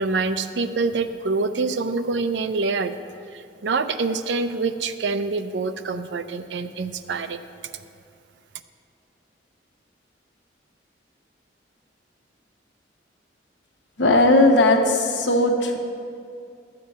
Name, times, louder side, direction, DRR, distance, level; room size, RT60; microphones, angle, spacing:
voice 1, 0.0-3.0 3.3-7.4, right 4 dB, 75° right, 10 dB, 0.5 m, -26 dB
voice 2, 14.0-15.8, left 2 dB, 75° left, 3 dB, 1.1 m, -17 dB
13.0 x 7.7 x 4.2 m, 2.4 s
head